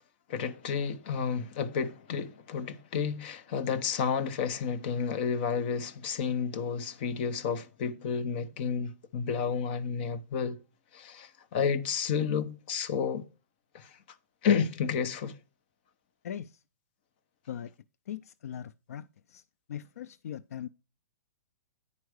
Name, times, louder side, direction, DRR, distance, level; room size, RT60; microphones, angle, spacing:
voice 1, 0.3-10.6 10.9-13.2 13.7-13.9 14.4-15.4, left 6 dB, 40° left, 0.9 m, -31 dB
voice 2, 16.2-16.6 17.5-17.7 18.1-19.4 19.7-20.7, left 9 dB, 70° left, 0.4 m, -40 dB
9.7 x 4.6 x 6.3 m
hypercardioid pair, 165°, 8 cm